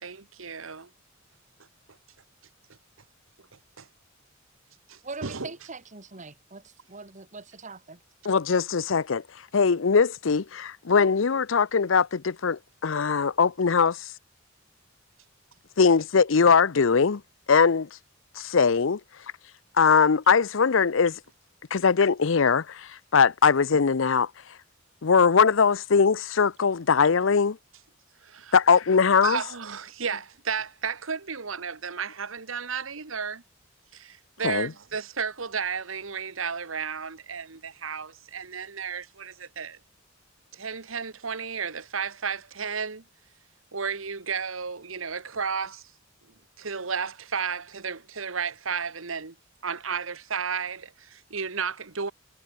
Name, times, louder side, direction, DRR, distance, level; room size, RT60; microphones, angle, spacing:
voice 1, 0.0-0.9 3.8-3.9 4.9-5.5 28.2-28.5 29.2-33.4 33.9-39.8 40.5-43.0 43.7-45.9 46.6-49.3 49.6-52.1, right 6 dB, 85° right, 1.5 m, -33 dB
voice 2, 5.0-8.0, right 3 dB, 40° right, 2.1 m, -42 dB
voice 3, 8.2-9.2 9.5-14.1 15.8-17.2 17.5-17.9 18.4-19.0 19.8-21.2 21.7-24.3 25.0-27.6 28.5-29.4 34.4-34.7, left 5 dB, 70° left, 0.6 m, -21 dB
head